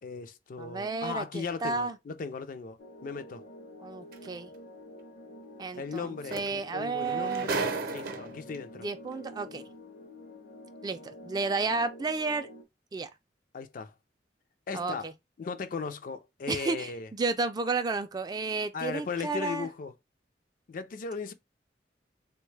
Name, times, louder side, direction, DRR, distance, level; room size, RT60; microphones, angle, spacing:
voice 1, 0.0-3.4 5.7-8.9 13.5-13.9 14.7-15.1 15.4-17.1 18.7-19.9 20.7-21.3, left 5 dB, 50° left, 0.4 m, -37 dB
voice 2, 0.6-2.0 3.8-4.5 5.6-7.5 8.8-9.6 10.8-12.5 12.9-13.1 14.7-15.1 16.5-19.7, right 3 dB, 25° right, 0.3 m, -32 dB
sound 1, 2.8-12.6, left 1 dB, 70° left, 0.7 m, -48 dB
sound 2, 4.1-4.3 6.0-6.1 6.3-8.6 9.5-9.6, right 4 dB, 55° right, 0.6 m, -34 dB
3.4 x 2.2 x 3.1 m
head